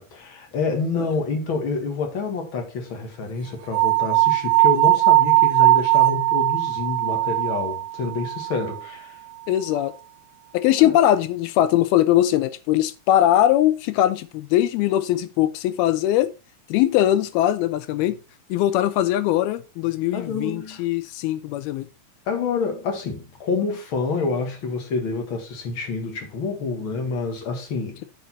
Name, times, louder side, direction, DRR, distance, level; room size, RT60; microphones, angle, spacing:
voice 1, 0.0-9.2 10.8-11.0 20.1-20.8 22.3-28.0, left 4 dB, 45° left, 1.9 m, -28 dB
sound 1, 3.7-8.8, right 20 dB, 80° right, 2.2 m, -19 dB
voice 2, 9.5-9.9 10.5-16.3 16.7-18.2 18.5-21.9, left 13 dB, 85° left, 2.6 m, -21 dB
9.3 x 5.4 x 4.1 m
omnidirectional pair, 4.4 m